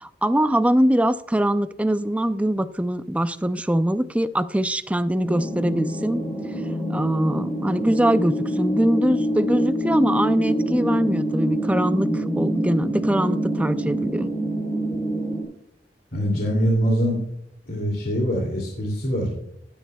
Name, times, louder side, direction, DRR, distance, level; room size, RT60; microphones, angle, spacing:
voice 1, 0.0-6.2 6.9-14.3, right 1 dB, 5° right, 12 dB, 0.4 m, -22 dB
sound 1, 5.2-15.4, equal, 15° left, 4.1 m, -25 dB
voice 2, 16.1-17.2 17.7-19.4, equal, 55° left, -1 dB, 2.7 m, -23 dB
16.5 x 10.0 x 2.3 m, 0.73 s
head